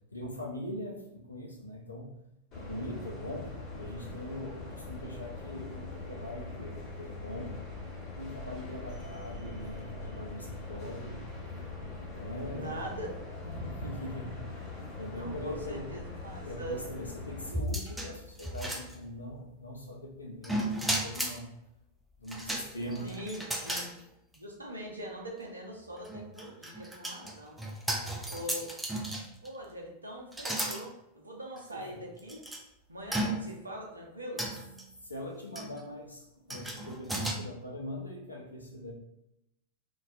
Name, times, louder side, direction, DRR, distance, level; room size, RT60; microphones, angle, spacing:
voice 1, 0.1-2.1 2.5-7.6 8.2-11.2 12.2-12.8 13.6-14.5 15.0-16.0 16.4-21.5 22.2-23.2 28.4-28.5 31.7-32.0 35.0-38.9, left 1 dB, 85° left, 0 dB, 0.5 m, -41 dB
sound 1, 2.5-17.5, left 3 dB, 35° left, 1.1 m, -42 dB
voice 2, 12.5-13.1 13.4-13.7 15.2-16.8 23.0-23.9 24.3-27.6 28.3-28.7 29.4-32.4 32.9-34.5, right 1 dB, 80° right, -1 dB, 0.5 m, -42 dB
sound 2, 17.5-19.3 20.4-21.4 22.3-23.9 24.3-24.4 26.0-29.5 30.3-30.8 31.6-31.7 32.3-32.6 33.1-33.7 34.4-34.8 35.5-35.8 36.5-37.3, right 1 dB, 5° right, 0.4 m, -35 dB
2.3 x 2.2 x 2.5 m, 0.84 s
figure-of-eight pair, 90°, 0 cm